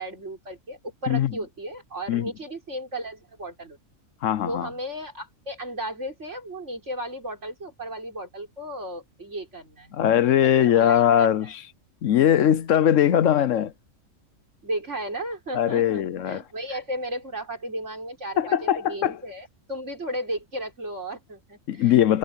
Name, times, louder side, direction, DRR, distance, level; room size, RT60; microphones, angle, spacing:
voice 1, 0.0-3.8 4.5-10.0 10.4-11.5 14.6-21.9, right 1 dB, 55° right, 5.4 m, -35 dB
voice 2, 4.2-4.7 9.9-11.6 12.0-13.7 15.5-16.4 18.4-19.2 21.7-22.2, left 10 dB, 65° left, 1.0 m, -20 dB
omnidirectional pair, 1.5 m